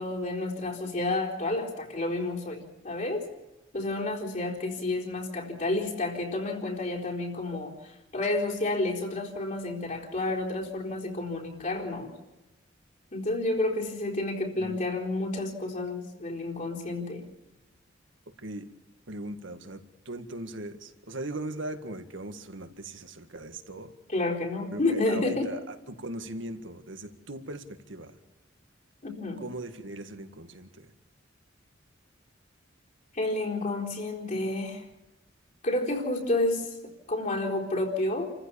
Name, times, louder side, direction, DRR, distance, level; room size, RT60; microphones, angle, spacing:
voice 1, 0.0-3.3 3.7-12.1 13.1-17.2 24.1-25.5 29.0-29.4 33.1-34.8 35.6-36.7 37.1-38.3, left 2 dB, 40° left, -1 dB, 4.1 m, -30 dB
voice 2, 18.4-18.7 19.1-23.9 24.7-28.2 29.4-30.9, right 1 dB, 70° right, 8 dB, 1.9 m, -39 dB
29.0 x 15.0 x 7.0 m, 1.0 s
head